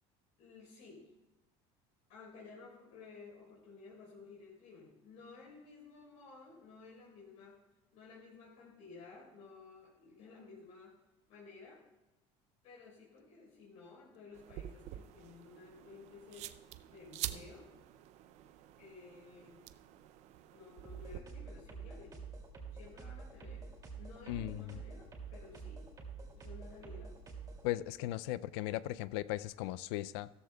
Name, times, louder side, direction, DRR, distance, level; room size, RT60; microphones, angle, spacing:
voice 1, 0.4-1.1 2.1-7.6 7.9-10.9 11.3-11.8 12.6-16.5 16.9-17.7 18.8-19.6 20.5-22.2 22.7-23.7 23.9-25.9 26.4-27.1, left 4 dB, 65° left, -4 dB, 4.1 m, -54 dB
sound 1, 14.3-21.2, right 14 dB, 60° right, 0.5 m, -47 dB
sound 2, 20.8-27.6, right 5 dB, 25° right, 2.5 m, -47 dB
voice 2, 24.3-24.8 27.6-30.3, left 15 dB, 90° left, 17 dB, 0.4 m, -37 dB
15.5 x 13.5 x 2.3 m, 1.0 s
cardioid pair, 135°, 13 cm